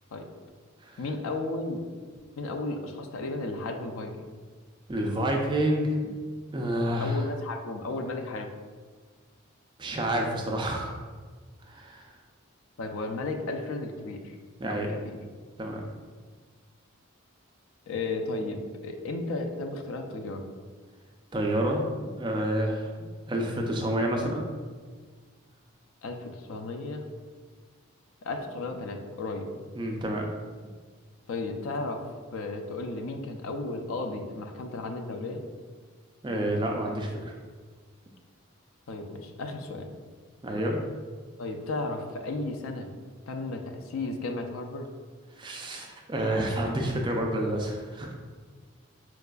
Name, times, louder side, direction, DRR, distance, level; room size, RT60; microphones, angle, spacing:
voice 1, 1.0-1.8 2.4-4.3 7.0-8.6 12.8-14.4 14.7-15.2 17.9-20.4 26.0-27.0 28.2-29.5 31.3-32.0 32.3-35.4 38.9-39.9 41.4-42.9 43.3-44.9, left 2 dB, 75° left, 4 dB, 0.4 m, -34 dB
voice 2, 4.9-6.0 6.5-7.3 9.8-11.0 11.7-12.1 14.6-14.9 15.6-15.8 21.3-22.9 23.3-24.4 29.8-30.3 36.2-37.3 40.4-40.8 45.4-48.1, right 1 dB, 20° right, 1 dB, 0.3 m, -29 dB
4.6 x 2.4 x 2.2 m, 1.5 s
head